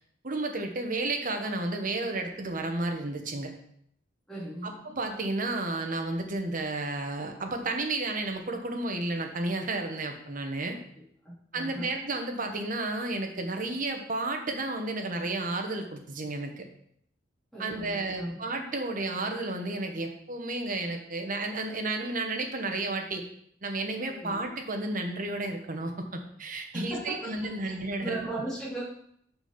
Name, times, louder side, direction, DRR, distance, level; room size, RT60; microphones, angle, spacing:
voice 1, 0.2-3.5 4.6-10.8 11.5-16.6 17.6-23.2 23.6-28.2, right 2 dB, 45° right, 4 dB, 1.1 m, -32 dB
voice 2, 4.3-4.7 11.2-11.9 17.5-18.3 24.2-24.4 26.7-27.2 27.6-28.8, right 2 dB, 5° left, -9 dB, 2.8 m, -37 dB
6.0 x 5.3 x 5.7 m, 0.70 s
head